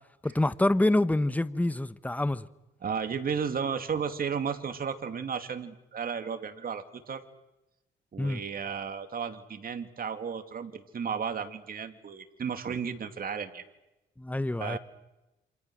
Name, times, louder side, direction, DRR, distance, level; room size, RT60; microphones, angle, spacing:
voice 1, 0.2-2.5 8.2-8.4 14.2-14.8, left 1 dB, 10° left, 1.1 m, -26 dB
voice 2, 2.8-7.2 8.1-13.6 14.6-14.8, right 6 dB, 45° right, 2.8 m, -34 dB
28.0 x 27.0 x 6.4 m
cardioid pair, 90°, 20 cm